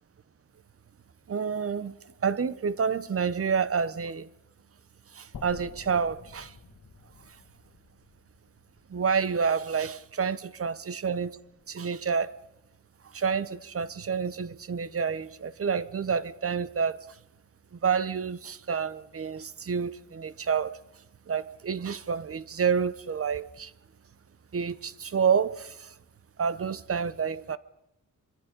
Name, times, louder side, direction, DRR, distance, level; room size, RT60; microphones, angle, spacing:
voice 1, 1.3-1.9 2.2-4.3 5.1-6.5 8.9-11.4 11.7-12.3 13.1-17.0 17.8-20.7 21.3-23.7 24.5-25.9 26.4-27.6, right 6 dB, 45° right, 0.8 m, -29 dB
sound 1, 5.3-9.4, left 5 dB, 70° left, 1.7 m, -49 dB
25.0 x 23.0 x 5.2 m
wide cardioid pair, 165°, 33 cm